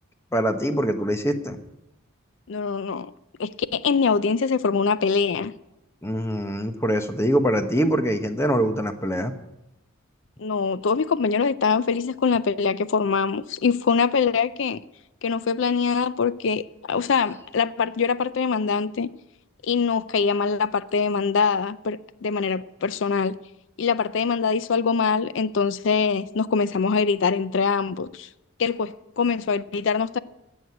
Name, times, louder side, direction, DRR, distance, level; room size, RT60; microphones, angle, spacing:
voice 1, 0.3-1.6 6.0-9.3, equal, 10° left, 1.0 m, -24 dB
voice 2, 2.5-3.1 3.4-5.5 10.4-14.8 15.2-19.1 19.6-23.4 23.8-28.3 28.6-30.2, left 5 dB, 60° left, 0.4 m, -23 dB
16.0 x 6.4 x 9.4 m
head